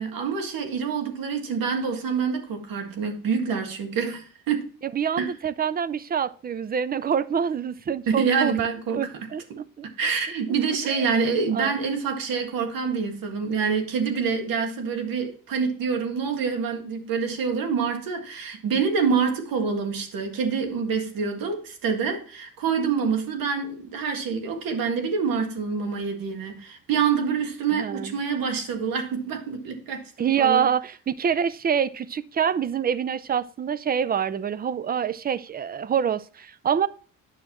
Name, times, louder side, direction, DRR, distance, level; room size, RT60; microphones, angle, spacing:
voice 1, 0.0-4.7 5.2-5.3 8.1-9.1 10.0-30.6, right 6 dB, 80° right, 1.8 m, -26 dB
voice 2, 4.8-8.5 8.9-9.9 10.7-11.0 11.5-11.8 27.7-28.2 30.2-36.9, right 8 dB, 30° right, 0.4 m, -26 dB
9.7 x 6.5 x 2.9 m
cardioid pair, 125°, 34 cm